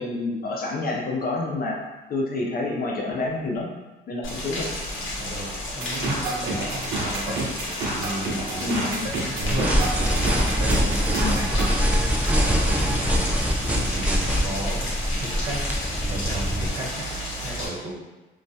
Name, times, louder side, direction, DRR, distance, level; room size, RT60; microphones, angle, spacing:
voice 1, 0.0-1.8 2.1-3.7 4.1-4.7 8.6-9.1 11.2-11.4, left 2 dB, 50° left, -2 dB, 0.5 m, -28 dB
Rain, 4.2-17.7, left 1 dB, 85° left, 0.7 m, -32 dB
voice 2, 5.2-5.5 5.7-7.5 8.0-11.5 12.2-14.9 15.2-15.7 16.1-17.1 17.4-17.9, right 1 dB, 45° right, -6 dB, 1.1 m, -34 dB
sound 1, 5.8-11.7, right 2 dB, 85° right, 0.6 m, -29 dB
sound 2, 9.4-16.7, equal, 5° right, 0.4 m, -23 dB
2.3 x 2.1 x 2.6 m, 1.1 s
cardioid pair, 90°, 20 cm